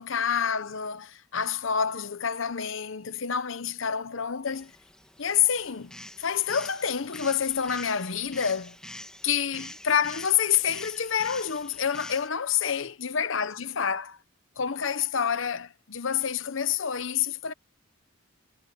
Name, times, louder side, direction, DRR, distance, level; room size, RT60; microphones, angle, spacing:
voice 1, 0.0-4.7 5.2-5.9 6.2-8.8 9.2-14.2 14.6-17.5, left 7 dB, 75° left, 0.9 m, -28 dB
sound 1, 4.5-12.3, left 1 dB, 5° left, 2.2 m, -46 dB
head